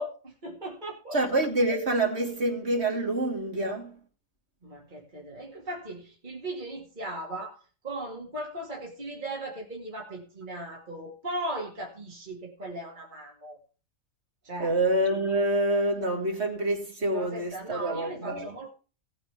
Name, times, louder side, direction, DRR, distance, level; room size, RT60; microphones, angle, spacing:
voice 1, 0.0-1.2 4.6-13.6 14.4-14.8 17.1-18.7, right 1 dB, 35° right, 2.4 m, -38 dB
voice 2, 1.1-3.9 14.6-18.5, right 1 dB, 50° right, 3.3 m, -27 dB
18.0 x 8.8 x 3.5 m
omnidirectional pair, 1.5 m